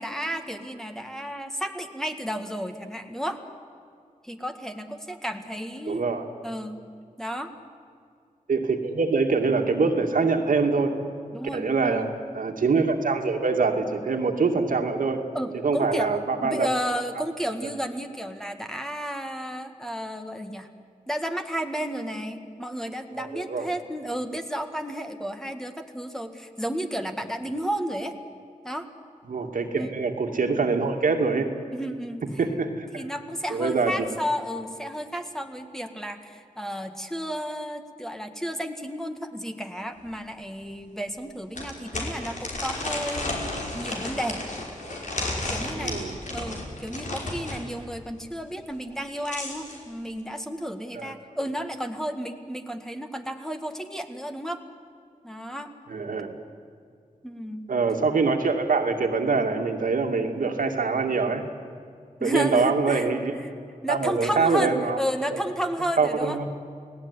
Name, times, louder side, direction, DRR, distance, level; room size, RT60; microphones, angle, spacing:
voice 1, 0.0-3.4 4.2-6.0 6.4-6.8 7.2-7.5 11.3-12.1 15.3-16.1 16.4-20.7 21.1-28.1 28.6-28.9 29.7-29.9 31.7-32.2 33.0-44.4 45.5-46.0 46.3-54.6 55.2-55.7 57.2-57.7 62.2-63.1 63.4-63.5 63.8-66.5, equal, 5° left, 6 dB, 1.8 m, -32 dB
voice 2, 5.9-6.3 8.5-11.0 11.5-12.1 12.3-15.2 15.6-16.7 17.2-17.3 17.6-17.7 23.2-23.7 29.3-31.6 32.4-33.0 33.5-33.9 45.8-46.2 51.0-51.1 55.9-56.3 57.7-61.5 62.2-63.3 63.9-65.0 65.3-65.4 66.0-66.5, right 4 dB, 80° right, 4 dB, 2.4 m, -24 dB
sound 1, 40.1-40.2 40.6-40.7 41.5-47.6 48.9-49.8, left 2 dB, 65° left, 5.6 m, -33 dB
29.5 x 19.0 x 9.9 m, 2.3 s
wide cardioid pair, 120°, 14 cm